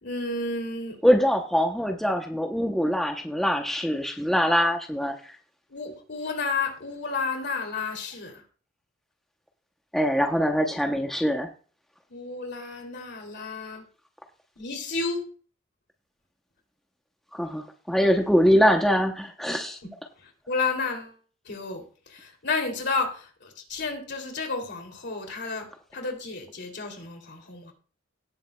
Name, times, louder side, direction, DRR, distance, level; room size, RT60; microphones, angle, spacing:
voice 1, 0.0-1.0 5.7-8.4 12.1-13.8 14.6-15.2 20.2-21.2 21.4-25.7 25.9-27.7, left 4 dB, 55° left, 2.8 m, -31 dB
voice 2, 1.0-5.3 9.9-11.5 17.4-19.8, equal, ahead, 0.7 m, -23 dB
18.0 x 7.4 x 2.2 m
head